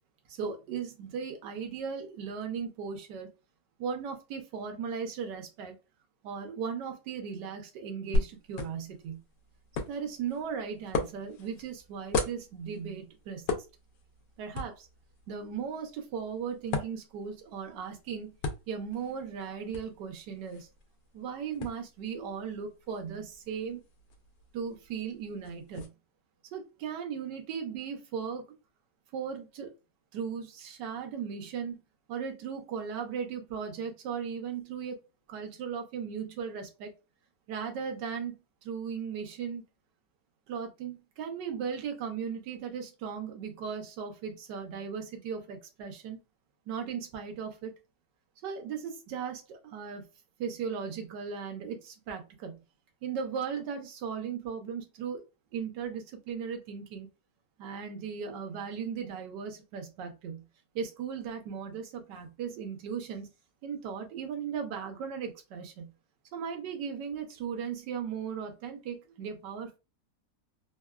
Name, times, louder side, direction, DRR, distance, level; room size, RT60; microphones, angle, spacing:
voice 1, 0.3-3.3 3.8-5.8 6.2-9.2 9.9-13.7 14.4-14.9 15.3-18.3 18.7-20.7 21.1-23.8 24.5-25.9 26.5-28.4 29.1-29.7 30.1-31.8 32.1-35.0 35.3-36.9 37.5-39.6 40.5-46.2 46.7-47.7 48.4-50.1 50.4-52.6 53.0-55.2 55.5-57.1 57.6-60.4 60.7-63.3 63.6-65.9 66.3-69.8, right 6 dB, 75° right, 1.3 m, -37 dB
sound 1, 8.1-25.9, left 3 dB, 90° left, 1.3 m, -38 dB
3.5 x 2.2 x 2.3 m
omnidirectional pair, 1.9 m